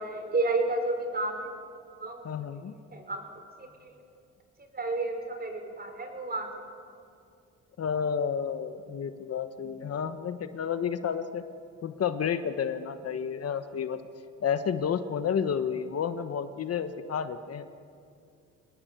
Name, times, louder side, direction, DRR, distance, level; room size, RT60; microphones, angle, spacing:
voice 1, 0.0-1.5 2.0-2.2 2.9-3.2 3.6-4.0 4.7-6.5, right 2 dB, 30° right, 5 dB, 5.1 m, -31 dB
voice 2, 2.2-2.8 7.8-11.4 11.8-14.0 14.4-17.7, left 7 dB, 55° left, 10 dB, 1.2 m, -31 dB
26.0 x 20.0 x 8.1 m, 2.5 s
cardioid pair, 90°, 30 cm